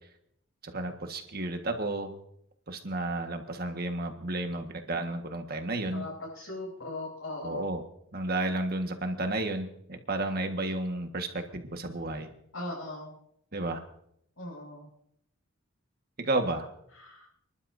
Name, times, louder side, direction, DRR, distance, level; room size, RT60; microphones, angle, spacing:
voice 1, 0.6-2.1 2.7-6.0 7.4-7.8 8.1-12.3 13.5-13.8 16.2-16.7, right 2 dB, 45° right, 5 dB, 1.6 m, -32 dB
voice 2, 5.9-7.6 12.5-13.1 14.4-14.9 17.0-17.3, left 2 dB, 80° left, -8 dB, 6.3 m, -39 dB
29.5 x 12.0 x 2.7 m, 0.73 s
head